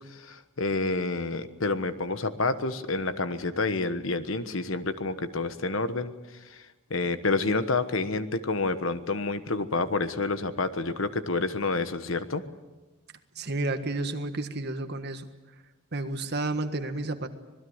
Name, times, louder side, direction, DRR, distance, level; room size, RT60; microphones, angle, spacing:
voice 1, 0.0-6.1 6.5-6.6 6.9-12.4, left 3 dB, 65° left, 11 dB, 1.3 m, -29 dB
voice 2, 13.3-15.3 15.9-17.3, right 2 dB, 50° right, 8 dB, 1.7 m, -31 dB
25.5 x 20.0 x 8.0 m, 1.1 s
head